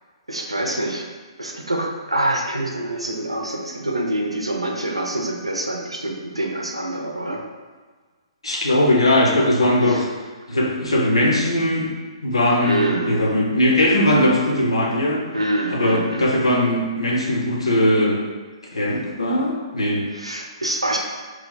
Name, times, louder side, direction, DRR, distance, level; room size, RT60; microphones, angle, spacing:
voice 1, 0.3-1.0 1.4-7.4 9.9-10.0 12.6-13.2 15.3-16.5 20.1-21.0, right 1 dB, 85° right, 1 dB, 0.6 m, -26 dB
voice 2, 8.4-10.1 10.5-11.9 12.2-15.2 15.7-18.2 18.7-20.1, left 1 dB, 75° left, -1 dB, 0.7 m, -19 dB
3.1 x 2.3 x 3.9 m, 1.4 s
figure-of-eight pair, 125°, 3 cm